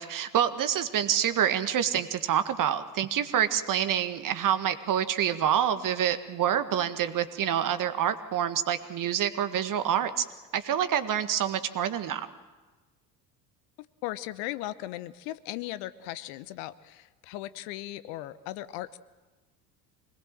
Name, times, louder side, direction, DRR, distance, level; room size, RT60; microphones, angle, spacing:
voice 1, 0.0-10.2 10.5-12.2, right 9 dB, 40° right, 10 dB, 1.7 m, -27 dB
voice 2, 14.0-19.0, left 15 dB, 55° left, 15 dB, 1.0 m, -37 dB
25.5 x 20.0 x 7.6 m, 1.2 s
figure-of-eight pair, 65°, 50 cm